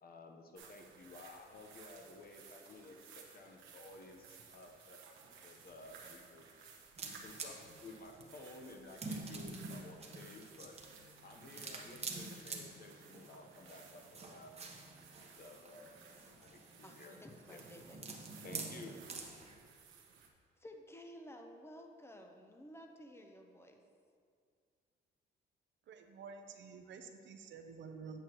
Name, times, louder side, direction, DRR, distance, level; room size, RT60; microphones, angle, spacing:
voice 1, 0.0-5.0 5.4-6.5 7.0-10.8 11.2-14.6 15.2-17.2 17.5-17.6 18.4-19.0, left 2 dB, 50° left, 3 dB, 1.0 m, -54 dB
sound 1, 0.5-20.3, right 6 dB, 90° right, 1.1 m, -59 dB
sound 2, 7.0-19.6, right 3 dB, 30° right, 1.0 m, -48 dB
voice 2, 16.8-18.0 20.6-23.8, equal, 10° left, 3 dB, 0.8 m, -54 dB
voice 3, 25.9-28.2, right 5 dB, 70° right, 6 dB, 0.7 m, -50 dB
8.3 x 7.6 x 3.0 m, 2.2 s
cardioid pair, 90°, 20 cm